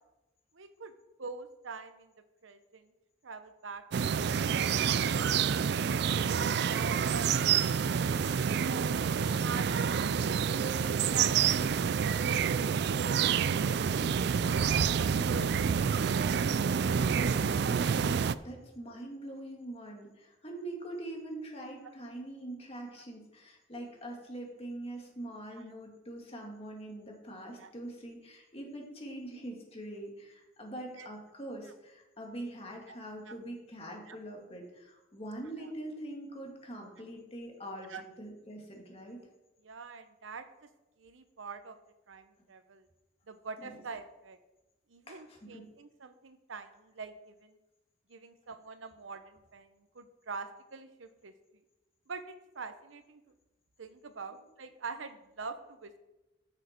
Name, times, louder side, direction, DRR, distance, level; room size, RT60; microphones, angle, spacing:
voice 1, 0.5-0.9 1.2-2.1 2.4-2.9 3.2-8.5 9.1-10.0 10.4-16.1 23.0-23.1 25.5-25.6 27.6-27.7 31.0-31.1 32.9-33.0 33.3-33.4 34.1-34.2 37.9-38.0 39.6-40.5 41.0-41.8 42.1-42.9 43.3-44.4 44.9-47.6 48.1-51.3 52.1-53.2 53.8-56.0, right 4 dB, 80° right, 10 dB, 0.8 m, -45 dB
sound 1, 3.9-18.4, right 7 dB, 55° right, 0.3 m, -28 dB
voice 2, 18.4-39.2 43.6-43.8 45.1-45.8, right 1 dB, 30° left, 0 dB, 2.1 m, -43 dB
14.5 x 6.4 x 4.5 m, 1.0 s
head